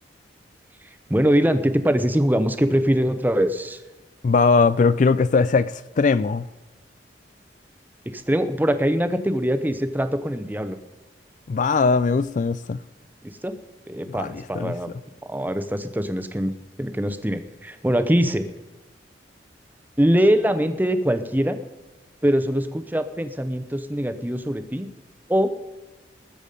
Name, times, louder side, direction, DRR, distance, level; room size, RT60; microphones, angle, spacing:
voice 1, 1.1-3.8 8.1-10.8 13.2-13.5 13.9-14.9 15.3-16.5 16.8-18.4 20.0-21.6 22.2-24.9 25.3-25.5, equal, 10° right, 0.8 m, -22 dB
voice 2, 4.2-6.5 11.5-12.8 14.1-14.7, left 4 dB, 45° left, 0.4 m, -20 dB
20.5 x 7.2 x 5.2 m
head